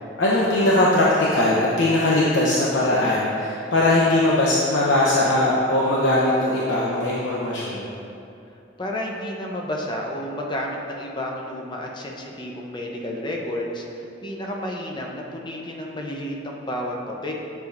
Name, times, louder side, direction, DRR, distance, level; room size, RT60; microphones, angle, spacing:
voice 1, 0.2-7.9, left 1 dB, 75° left, -6 dB, 0.9 m, -20 dB
voice 2, 8.8-17.3, left 1 dB, 25° left, 0 dB, 0.8 m, -31 dB
9.8 x 6.9 x 2.6 m, 2.7 s
head